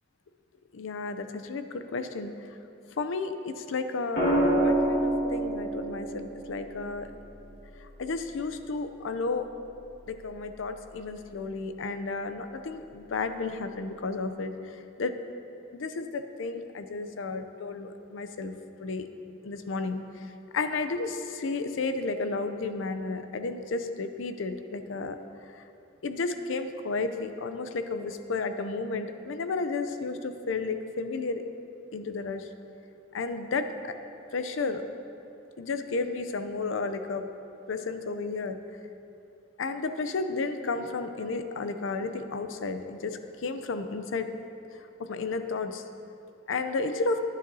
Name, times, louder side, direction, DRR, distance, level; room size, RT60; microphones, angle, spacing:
voice 1, 0.7-2.3 3.0-7.1 7.8-9.5 10.1-15.2 15.7-19.1 19.4-20.2 20.5-25.2 25.5-25.6 26.0-31.4 31.9-32.5 33.1-33.9 34.3-34.8 35.6-37.3 37.7-38.6 39.6-44.3 45.0-45.8 46.5-47.2, left 3 dB, 75° left, 9 dB, 0.5 m, -32 dB
sound 1, 4.2-8.3 10.0-10.4, right 1 dB, 55° left, 1.8 m, -28 dB
10.5 x 8.9 x 2.7 m, 2.7 s
head